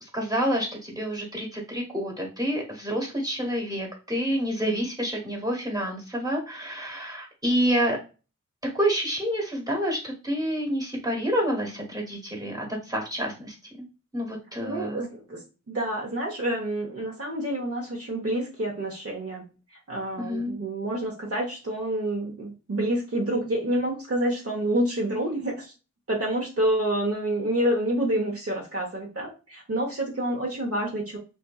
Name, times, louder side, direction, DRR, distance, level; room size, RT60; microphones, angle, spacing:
voice 1, 0.0-8.0 8.7-13.8 14.1-15.0 20.2-20.5, equal, 15° right, 0 dB, 1.1 m, -28 dB
voice 2, 14.6-15.4 15.7-19.5 19.9-25.7 26.1-31.2, right 1 dB, 50° right, -1 dB, 0.8 m, -28 dB
2.6 x 2.5 x 2.3 m, 0.32 s
wide cardioid pair, 55°, 29 cm